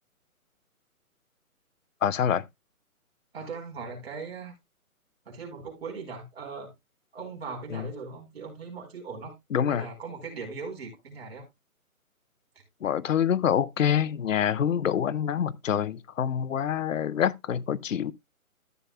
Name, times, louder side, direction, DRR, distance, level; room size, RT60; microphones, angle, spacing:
voice 1, 2.0-2.5 7.7-7.9 9.5-9.9 12.8-18.1, left 8 dB, 60° left, 0.6 m, -26 dB
voice 2, 3.3-4.5 5.3-6.7 7.1-9.3 9.7-11.5, right 4 dB, 45° right, 4.4 m, -39 dB
14.0 x 7.0 x 2.3 m
hypercardioid pair, 175°, 44 cm